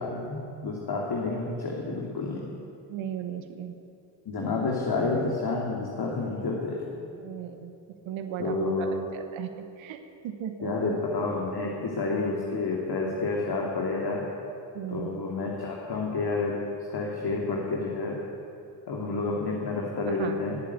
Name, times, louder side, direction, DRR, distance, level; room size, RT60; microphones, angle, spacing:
voice 1, 0.0-2.5 4.2-7.1 8.4-9.0 10.6-14.2 14.9-16.6 16.9-18.2 18.9-20.6, left 3 dB, 50° left, -2 dB, 2.8 m, -29 dB
voice 2, 2.9-3.7 7.2-7.7 8.0-9.5 9.8-10.9 14.7-15.2 20.2-20.4, right 9 dB, 65° right, 7 dB, 1.2 m, -36 dB
20.5 x 8.5 x 8.3 m, 2.6 s
hypercardioid pair, 45°, 50 cm